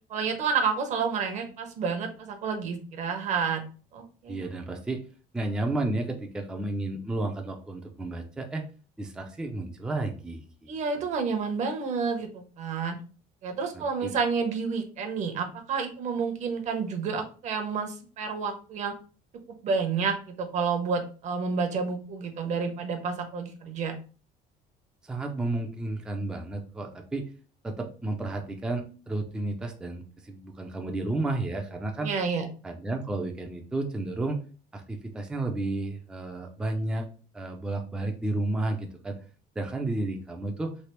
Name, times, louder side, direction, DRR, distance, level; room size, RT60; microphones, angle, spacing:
voice 1, 0.1-3.6 3.9-4.4 10.7-13.0 13.4-18.9 19.6-23.9 32.0-32.5, right 5 dB, 45° right, 6 dB, 0.7 m, -30 dB
voice 2, 4.3-5.0 5.3-8.6 9.0-10.7 13.7-14.1 25.0-27.3 27.6-32.1 32.6-34.4 34.7-37.0 37.3-39.2 39.6-40.7, right 2 dB, 5° right, 3 dB, 0.3 m, -32 dB
3.2 x 2.8 x 2.9 m, 0.38 s
cardioid pair, 160°, 17 cm